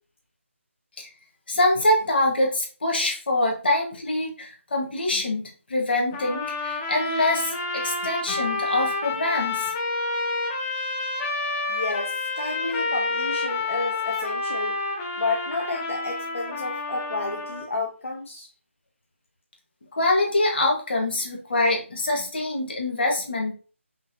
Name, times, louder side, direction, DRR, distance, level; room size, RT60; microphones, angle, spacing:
voice 1, 1.5-9.7 19.9-23.5, left 2 dB, 50° left, -1 dB, 1.6 m, -24 dB
sound 1, 6.1-17.7, left 3 dB, 15° left, 0.5 m, -29 dB
voice 2, 11.7-14.8 15.2-18.5, left 3 dB, 70° left, -1 dB, 0.9 m, -31 dB
5.5 x 2.6 x 2.7 m, 0.39 s
figure-of-eight pair, 155°, 7 cm